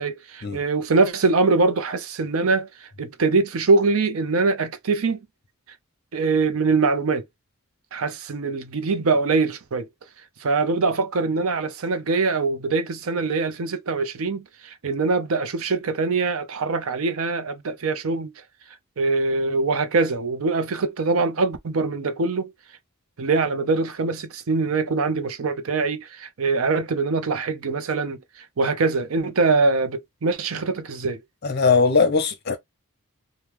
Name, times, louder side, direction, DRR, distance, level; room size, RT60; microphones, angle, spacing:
voice 1, 0.0-5.2 6.1-7.2 7.9-9.9 10.4-18.3 19.0-22.5 23.2-31.2, right 3 dB, 70° right, 0.6 m, -23 dB
voice 2, 31.4-32.6, left 4 dB, 50° left, 0.8 m, -19 dB
3.0 x 2.2 x 3.3 m
head